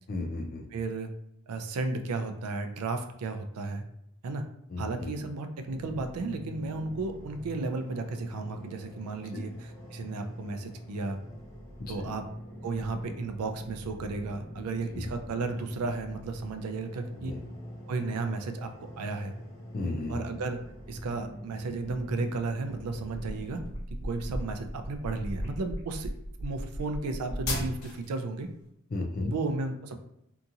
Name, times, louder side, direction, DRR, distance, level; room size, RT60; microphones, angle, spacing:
voice 1, 0.1-0.6 4.7-5.1 9.3-9.4 11.8-12.1 14.9-15.1 17.2-17.4 19.7-20.2 28.9-29.3, left 2 dB, 40° left, 3 dB, 0.3 m, -34 dB
voice 2, 0.7-1.1 1.5-3.8 4.2-4.4 4.8-11.2 11.9-12.3 12.6-17.3 17.9-19.3 20.1-20.6 20.9-23.6 24.0-26.1 26.4-28.5 29.3-29.9, right 3 dB, 90° right, 7 dB, 0.4 m, -34 dB
sound 1, 5.7-23.7, equal, 15° left, 0.8 m, -44 dB
sound 2, 23.1-28.1, left 1 dB, 75° left, 0.9 m, -36 dB
2.8 x 2.4 x 2.6 m, 0.78 s
head